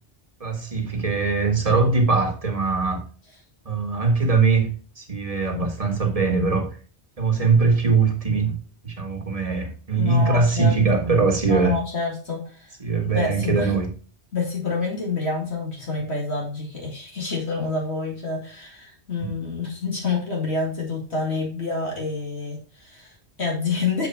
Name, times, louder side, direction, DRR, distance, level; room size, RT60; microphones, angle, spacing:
voice 1, 0.4-3.0 3.6-6.7 7.2-8.6 8.8-11.8 12.8-13.9 19.2-19.3, right 4 dB, 35° right, 1.5 m, -21 dB
voice 2, 10.0-10.8 11.5-12.7 13.0-13.7 14.3-24.1, left 4 dB, 75° left, 2.5 m, -28 dB
6.6 x 4.9 x 4.4 m
omnidirectional pair, 1.1 m